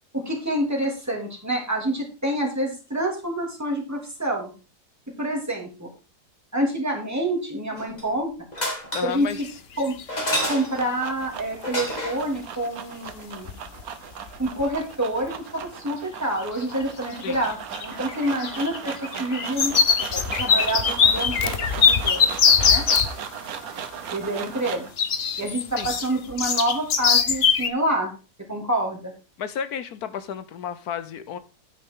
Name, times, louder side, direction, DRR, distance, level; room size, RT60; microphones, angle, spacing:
voice 1, 0.1-4.5 5.2-5.9 6.5-8.3 9.0-9.3 9.8-9.9 10.5-13.5 14.4-19.7 20.1-21.5 21.8-22.3 22.7-22.8 24.1-24.8 25.4-28.1 28.5-29.1, right 1 dB, 10° right, 3.0 m, -27 dB
sound 1, 7.8-8.2 8.5-9.2 10.1-10.9 11.6-12.3 14.4-14.5 14.7-14.8, equal, 25° left, 2.5 m, -29 dB
voice 2, 8.9-9.4 17.2-17.5 25.8-26.0 29.4-31.4, left 7 dB, 70° left, 1.3 m, -32 dB
sound 2, 9.3-9.5 9.8-10.4 12.4-12.5 13.1-13.2 13.5-13.8 14.1-14.7 15.2-15.3 16.4-16.8 17.1-23.1 25.0-27.7, left 6 dB, 45° left, 1.0 m, -22 dB
sound 3, 10.6-24.9, right 8 dB, 65° right, 1.4 m, -37 dB
9.7 x 9.2 x 3.8 m
omnidirectional pair, 1.7 m